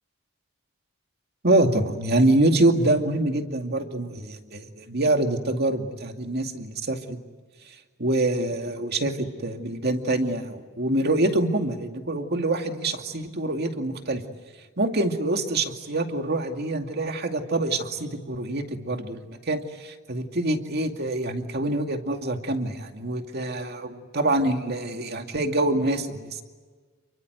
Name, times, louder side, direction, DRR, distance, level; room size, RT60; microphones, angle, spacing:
voice 1, 1.4-7.2 8.0-14.2 14.8-26.4, right 2 dB, 55° right, 5 dB, 2.4 m, -25 dB
29.5 x 23.5 x 8.0 m, 1.4 s
head